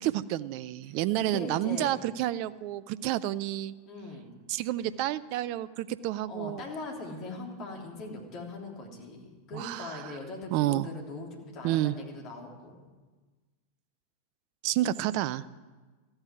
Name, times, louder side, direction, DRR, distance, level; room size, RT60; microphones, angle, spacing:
voice 1, 0.0-3.7 4.5-6.6 9.5-10.1 10.5-10.9 11.6-12.0 14.6-15.4, right 14 dB, 45° right, 17 dB, 0.5 m, -30 dB
voice 2, 0.9-2.0 3.8-4.3 4.9-5.0 6.3-12.9, left 2 dB, 35° left, 0 dB, 3.3 m, -41 dB
14.0 x 8.9 x 9.5 m, 1.3 s
figure-of-eight pair, 90°, 0 cm